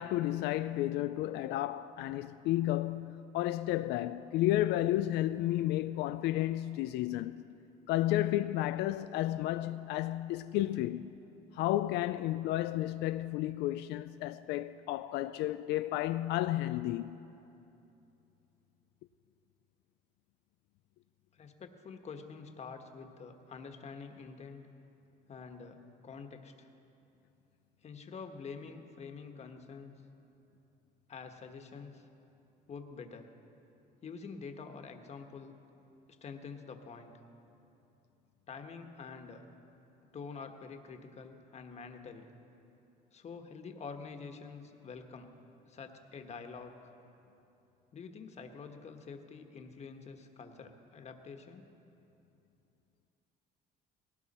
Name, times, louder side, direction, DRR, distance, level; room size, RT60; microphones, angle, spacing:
voice 1, 0.0-7.4 7.9-11.1 11.5-17.2, left 14 dB, 90° left, 0.4 m, -32 dB
voice 2, 21.3-24.7 25.3-26.7 27.8-29.9 31.1-32.0 32.7-33.3 34.0-35.5 36.2-37.1 38.5-39.4 40.1-42.3 43.1-45.3 45.7-46.9 47.9-51.7, left 5 dB, 40° left, 1.4 m, -47 dB
19.0 x 17.5 x 4.3 m
cardioid pair, 110°, 17 cm